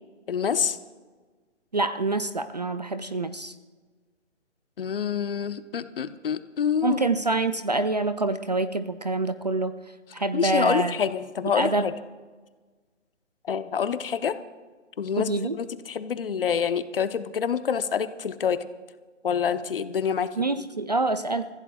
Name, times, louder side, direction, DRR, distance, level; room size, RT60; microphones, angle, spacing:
voice 1, 0.3-0.8 4.8-7.0 10.3-11.9 13.5-14.3 15.0-15.3 15.6-18.7 19.2-20.4, left 7 dB, 50° left, 11 dB, 0.8 m, -27 dB
voice 2, 1.7-3.5 6.8-9.7 10.1-11.0 11.4-11.9 15.2-15.6 20.4-21.5, right 2 dB, 35° right, 12 dB, 0.4 m, -26 dB
29.5 x 15.0 x 2.3 m, 1.4 s
hypercardioid pair, 155°, 37 cm